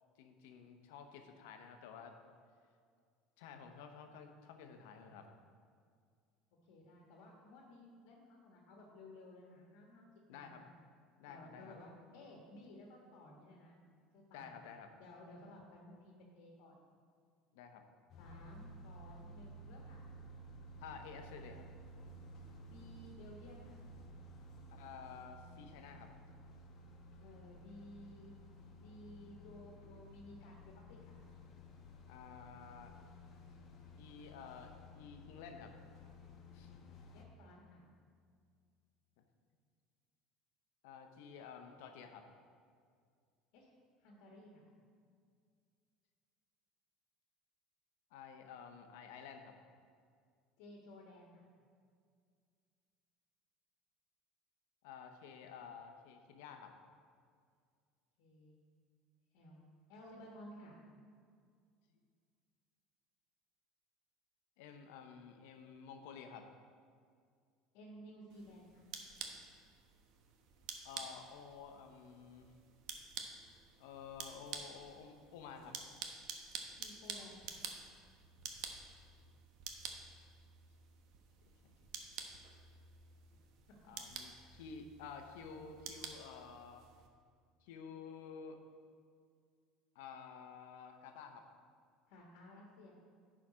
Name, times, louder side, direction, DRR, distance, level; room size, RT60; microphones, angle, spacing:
voice 1, 0.2-2.1 3.4-5.3 10.3-10.6 11.2-11.7 14.3-14.9 17.5-17.8 20.8-21.7 24.7-26.1 29.8-29.9 32.1-32.9 34.0-35.7 36.5-36.7 39.2-39.3 40.8-42.2 48.1-49.5 54.8-56.7 64.6-66.5 70.8-72.5 73.8-75.8 81.6-81.7 83.9-86.9 87.6-88.6 89.9-91.5, left 6 dB, 90° left, 5 dB, 0.9 m, -52 dB
voice 2, 6.6-10.6 11.3-13.8 14.1-14.5 15.0-16.8 18.2-20.0 22.6-23.8 27.2-28.3 28.7-31.2 37.1-37.9 43.5-43.7 44.0-44.6 50.6-51.4 58.2-58.6 59.3-59.6 59.9-60.8 67.7-68.8 76.7-77.5 92.1-92.9, left 1 dB, 75° left, -1 dB, 1.4 m, -56 dB
sound 1, 18.1-37.2, equal, 40° left, 1.0 m, -55 dB
sound 2, 68.3-87.1, right 6 dB, 60° right, 0.9 m, -50 dB
10.5 x 4.9 x 5.0 m, 2.1 s
cardioid pair, 150°, 0 cm